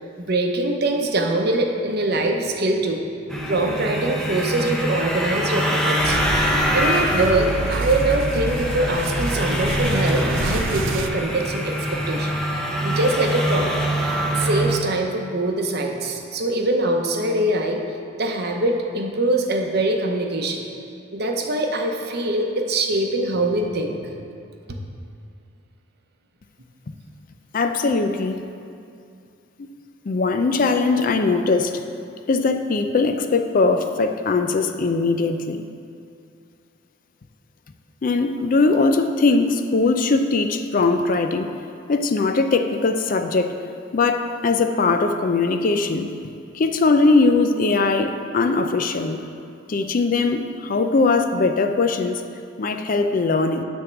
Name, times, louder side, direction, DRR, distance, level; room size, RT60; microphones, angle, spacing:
voice 1, 0.2-3.1 3.5-6.2 6.7-12.4 12.8-13.8 14.2-17.8 18.2-20.7 21.1-24.1 24.7-24.8, right 2 dB, 50° right, 2 dB, 0.8 m, -23 dB
snowmobiles pass by long line convoy, 3.3-14.8, equal, 5° left, 0.7 m, -24 dB
sound 1, 6.0-11.1, right 3 dB, 70° right, 0.4 m, -28 dB
voice 2, 27.5-28.4 29.6-29.7 30.1-31.7 32.3-35.7 38.0-41.5 41.9-43.5 43.9-46.1 46.5-49.2 49.7-52.2 52.6-53.6, left 3 dB, 45° left, 7 dB, 0.4 m, -20 dB
9.8 x 3.6 x 6.9 m, 2.5 s
head